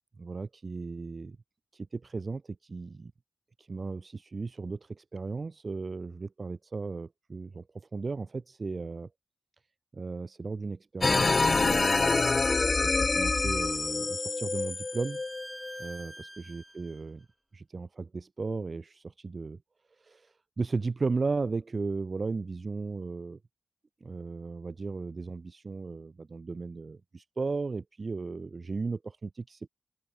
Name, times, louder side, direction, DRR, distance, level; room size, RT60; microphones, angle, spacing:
voice 1, 0.2-1.4 1.7-3.1 3.6-9.1 9.9-12.3 12.8-15.2 15.8-17.2 17.5-19.6 20.0-23.4 24.0-29.7, right 4 dB, 35° right, 2.8 m, -36 dB
sound 1, 11.0-15.9, left 3 dB, 30° left, 0.8 m, -26 dB
Bowed string instrument, 13.2-17.0, right 1 dB, 10° right, 3.7 m, -48 dB
open air
wide cardioid pair, 175°, 0 cm